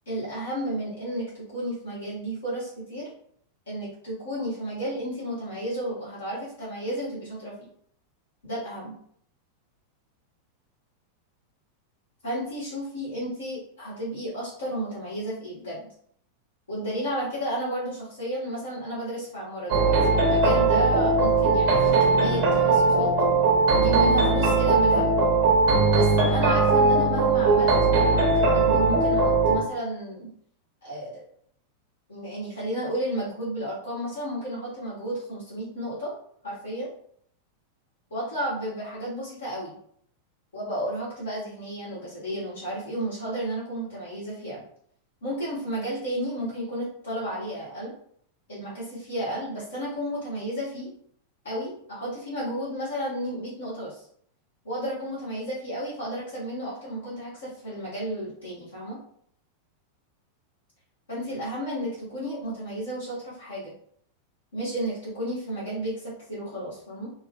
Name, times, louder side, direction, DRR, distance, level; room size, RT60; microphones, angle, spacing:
voice 1, 0.1-3.1 3.7-7.5 8.4-9.0 12.2-15.8 16.7-23.1 23.7-25.2 25.9-30.3 30.8-31.2 32.1-36.1 36.4-36.9 38.1-39.7 40.5-44.6 45.2-47.9 48.5-50.9 51.4-54.0 54.6-59.0 61.1-63.7 64.5-67.1, right 1 dB, 70° left, -9 dB, 1.2 m, -32 dB
sound 1, 19.7-29.6, right 3 dB, 50° right, 0.7 m, -20 dB
2.9 x 2.4 x 2.2 m, 0.64 s
figure-of-eight pair, 90°, 0 cm